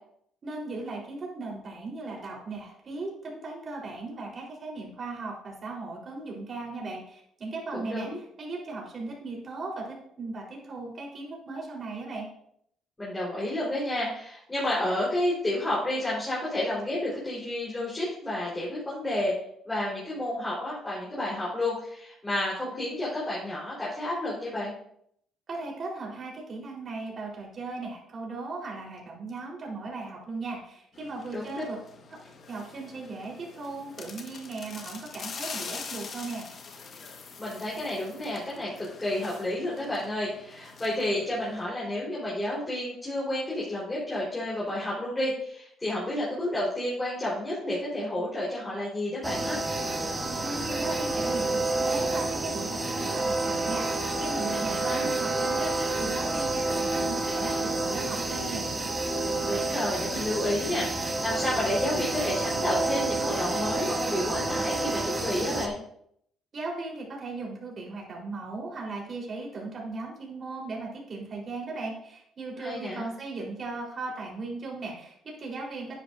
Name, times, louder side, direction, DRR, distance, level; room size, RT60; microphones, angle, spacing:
voice 1, 0.4-12.3 25.5-31.8 32.2-36.5 50.4-58.7 66.5-76.0, right 3 dB, 45° right, -2 dB, 4.4 m, -37 dB
voice 2, 7.7-8.2 13.0-19.3 19.7-24.7 31.3-31.6 37.4-49.6 54.5-55.1 59.4-65.7 72.6-73.1, left 1 dB, 15° left, -7 dB, 4.5 m, -31 dB
sound 1, 30.9-41.6, left 5 dB, 50° left, 1.6 m, -44 dB
sound 2, 49.2-65.7, right 2 dB, 20° right, 1.6 m, -29 dB
11.0 x 9.9 x 2.8 m, 0.70 s
cardioid pair, 85°, 0 cm